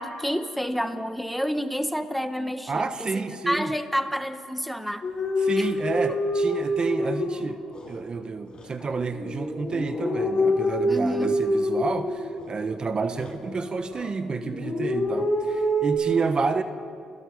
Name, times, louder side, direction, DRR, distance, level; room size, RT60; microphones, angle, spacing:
voice 1, 0.0-3.1 3.5-5.0 5.6-5.7 10.9-11.3, equal, ahead, 9 dB, 1.3 m, -29 dB
voice 2, 2.7-3.7 5.4-16.6, right 4 dB, 40° right, 10 dB, 1.2 m, -29 dB
sound 1, 5.0-7.9 8.5-12.7 13.1-14.1 14.4-15.9, left 1 dB, 40° left, 7.9 m, -27 dB
29.0 x 17.0 x 5.5 m, 2.2 s
supercardioid pair, 60°, 2 cm